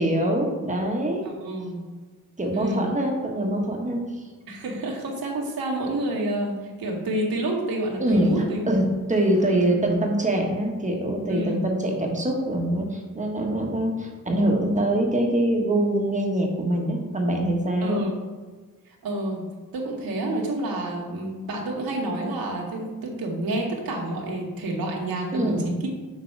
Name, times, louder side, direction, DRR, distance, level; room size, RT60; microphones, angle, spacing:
voice 1, 0.0-1.2 2.4-4.2 8.0-8.8 9.1-18.0 25.3-25.7, right 1 dB, 20° right, 0 dB, 1.5 m, -24 dB
voice 2, 1.3-1.8 2.5-2.9 4.5-8.6 11.3-11.6 17.8-18.1 19.0-25.9, right 1 dB, 85° right, -1 dB, 2.0 m, -28 dB
7.2 x 6.6 x 4.7 m, 1.4 s
wide cardioid pair, 130°, 35 cm